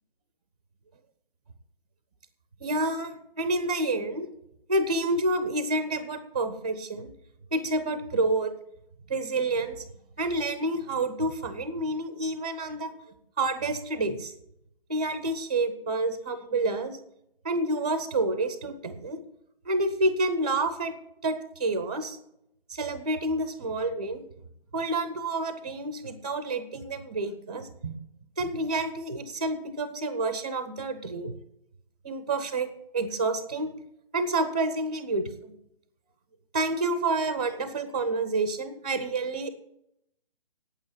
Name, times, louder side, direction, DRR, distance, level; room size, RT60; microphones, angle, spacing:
voice 1, 2.6-4.3 4.7-7.1 7.5-8.5 9.1-9.9 10.2-12.9 13.4-14.3 14.9-17.0 17.4-19.2 19.6-20.9 21.2-22.2 22.7-24.3 24.7-27.9 28.4-31.3 32.0-32.7 32.9-33.7 34.1-35.5 36.5-39.5, right 2 dB, 10° right, 11 dB, 0.4 m, -28 dB
8.8 x 8.5 x 9.4 m, 0.79 s
figure-of-eight pair, 140°, 29 cm